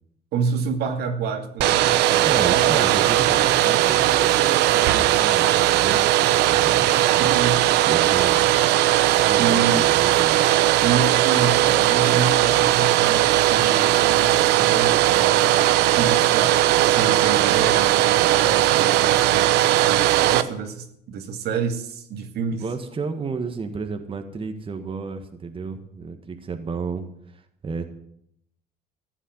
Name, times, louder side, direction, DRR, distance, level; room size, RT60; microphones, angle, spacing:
voice 1, 0.3-3.0 7.2-8.4 9.3-9.9 10.8-22.6, right 5 dB, 75° right, 5 dB, 2.4 m, -28 dB
Domestic sounds home sounds, 1.6-20.4, right 14 dB, 90° right, 0.9 m, -18 dB
voice 2, 2.1-7.2 7.8-8.5 9.3-10.4 22.5-27.8, right 4 dB, 30° right, 6 dB, 1.7 m, -32 dB
14.5 x 9.1 x 9.3 m, 0.72 s
cardioid pair, 110°, 17 cm